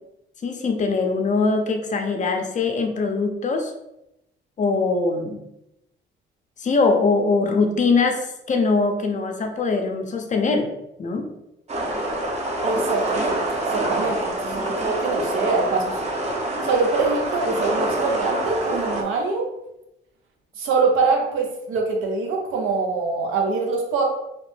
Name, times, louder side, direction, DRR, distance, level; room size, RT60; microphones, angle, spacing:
voice 1, 0.4-3.7 4.6-5.4 6.6-10.7 11.0-11.3, left 4 dB, 40° left, 4 dB, 0.5 m, -22 dB
sound 1, 11.7-19.0, right 1 dB, 35° right, 0.7 m, -26 dB
voice 2, 12.6-13.4 13.7-16.0 16.6-19.5 20.6-24.0, right 4 dB, 85° right, 1 dB, 0.6 m, -24 dB
2.8 x 2.1 x 3.1 m, 0.86 s
cardioid pair, 90°, 20 cm